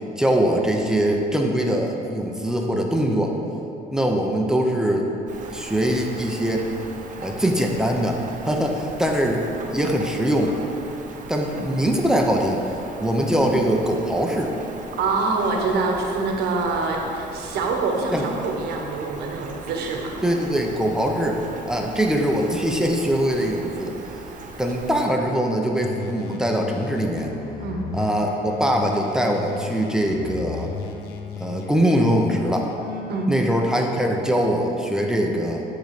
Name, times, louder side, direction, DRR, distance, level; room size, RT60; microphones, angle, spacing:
voice 1, 0.2-3.3 3.9-5.1 5.5-6.7 7.2-9.4 9.7-10.6 11.3-12.6 13.0-14.5 18.1-18.2 20.2-21.4 21.7-23.9 24.6-27.3 27.9-30.7 31.4-32.7 33.3-35.6, equal, 5° right, 1 dB, 0.8 m, -22 dB
Rain, 5.3-25.1, right 3 dB, 50° right, 0.9 m, -39 dB
voice 2, 15.0-20.1 27.6-27.9 33.1-33.5, right 3 dB, 75° right, 1 dB, 1.3 m, -25 dB
sound 1, 25.8-33.3, left 6 dB, 80° left, 0.6 m, -35 dB
10.5 x 3.8 x 5.9 m, 2.8 s
cardioid pair, 110°, 17 cm